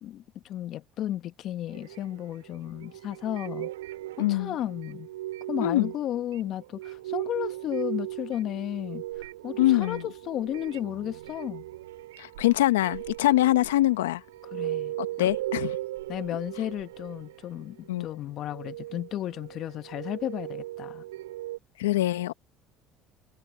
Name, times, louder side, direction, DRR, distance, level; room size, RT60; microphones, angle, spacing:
voice 1, 0.0-3.7 4.2-5.1 5.5-11.6 14.5-15.3 16.1-21.0, left 12 dB, 60° left, 1.6 m, -34 dB
sound 1, 1.7-17.9 18.4-21.6, right 15 dB, 90° right, 5.2 m, -38 dB
voice 2, 4.2-4.5 5.6-5.9 9.6-10.1 12.2-14.2 15.0-15.7 17.9-18.1 21.8-22.3, left 15 dB, 90° left, 1.0 m, -24 dB
hypercardioid pair, 70°, 0 cm